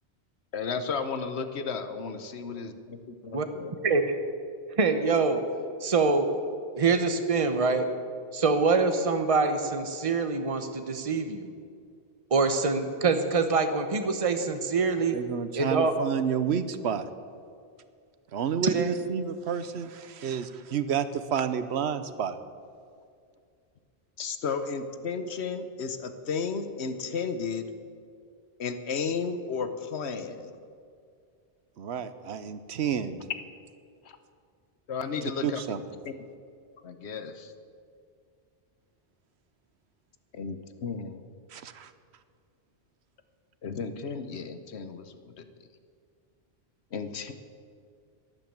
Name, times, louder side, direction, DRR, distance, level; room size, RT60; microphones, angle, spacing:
voice 1, 0.5-3.7 24.2-27.7 28.6-30.5 34.1-34.2 34.9-35.6 36.0-36.1 36.8-37.5 40.3-41.2 43.6-45.4 46.9-47.3, left 5 dB, 80° left, 10 dB, 1.2 m, -33 dB
voice 2, 3.8-4.1 4.8-5.4 5.8-6.3 6.7-7.8 8.3-11.5 12.3-15.2 15.5-15.9 18.7-18.9, right 4 dB, 35° right, 7 dB, 1.0 m, -25 dB
voice 3, 15.1-17.1 18.3-22.4 31.8-33.3 35.4-35.8 41.5-41.9, right 7 dB, 75° right, 12 dB, 1.1 m, -30 dB
12.0 x 10.5 x 8.7 m, 2.2 s
omnidirectional pair, 1.1 m